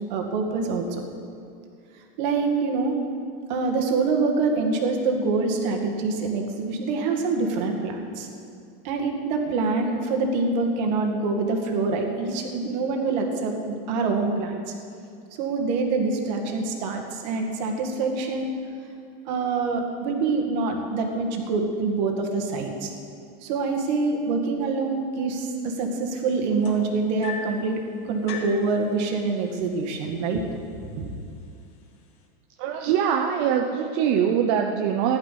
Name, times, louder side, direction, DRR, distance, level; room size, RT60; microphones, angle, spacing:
voice 1, 0.1-1.0 2.2-2.9 3.5-8.3 8.8-14.7 15.4-18.5 19.3-22.9 23.4-27.8 28.1-30.4 30.9-31.1, right 4 dB, 45° right, 3 dB, 2.0 m, -25 dB
sound 1, 26.6-27.7 28.3-28.7 29.7-29.8 30.2-30.6 31.3-31.4, left 5 dB, 45° left, 1.8 m, -36 dB
voice 2, 32.6-35.2, right 8 dB, 30° right, 3 dB, 0.6 m, -23 dB
16.0 x 11.5 x 5.8 m, 2.3 s
supercardioid pair, 175°, 30 cm